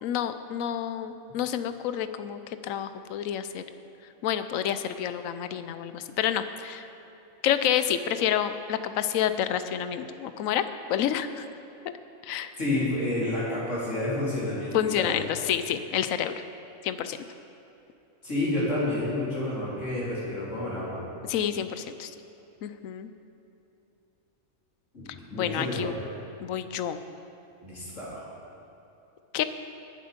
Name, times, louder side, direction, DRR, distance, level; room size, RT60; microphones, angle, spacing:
voice 1, 0.0-3.6 4.2-6.9 7.4-11.5 11.8-11.9 12.2-12.5 14.7-16.3 16.8-17.2 21.3-22.1 22.6-23.1 25.3-25.9 26.4-27.0 29.3-29.4, left 10 dB, 80° left, 11 dB, 1.0 m, -29 dB
voice 2, 12.6-15.1 18.2-21.0 24.9-25.9 27.6-28.2, left 1 dB, 65° left, -8 dB, 4.2 m, -30 dB
20.0 x 7.6 x 5.2 m, 2.9 s
omnidirectional pair, 1.4 m